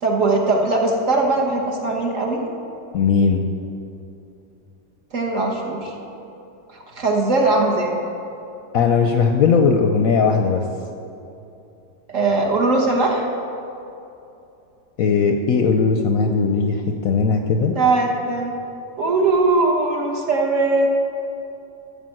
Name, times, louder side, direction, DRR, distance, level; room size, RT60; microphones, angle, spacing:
voice 1, 0.0-2.4 5.1-5.9 7.0-8.0 12.1-13.3 17.7-18.5 19.0-20.9, right 3 dB, 50° right, 0 dB, 1.5 m, -20 dB
voice 2, 2.9-3.4 8.7-10.6 15.0-17.7, left 5 dB, 65° left, 4 dB, 0.9 m, -18 dB
13.0 x 5.1 x 7.7 m, 2.8 s
omnidirectional pair, 1.9 m